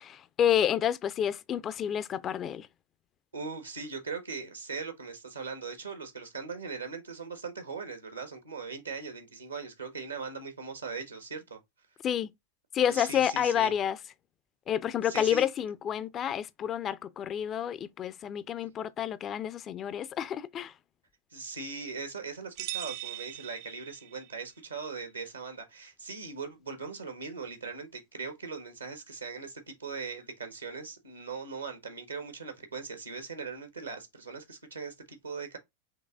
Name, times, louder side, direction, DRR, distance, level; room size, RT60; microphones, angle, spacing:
voice 1, 0.0-2.7 12.0-12.3 12.7-14.0 14.7-20.7, left 9 dB, 30° left, 0.4 m, -29 dB
voice 2, 3.3-11.6 12.9-13.7 15.0-15.5 21.3-35.6, right 4 dB, 80° right, 1.2 m, -40 dB
sound 1, 22.6-24.4, right 15 dB, 45° right, 0.4 m, -40 dB
5.4 x 3.2 x 2.4 m
figure-of-eight pair, 90°, 0 cm